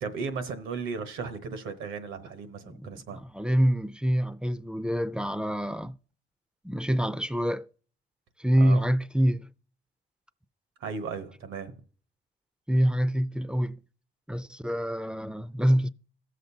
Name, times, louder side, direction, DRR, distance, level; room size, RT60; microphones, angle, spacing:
voice 1, 0.0-3.2 8.6-8.8 10.8-11.8, right 5 dB, 85° right, 1.0 m, -36 dB
voice 2, 3.1-5.9 6.6-7.6 8.4-9.5 12.7-13.8 14.3-15.9, equal, 5° right, 0.4 m, -26 dB
16.0 x 6.5 x 2.7 m
cardioid pair, 90°, 20 cm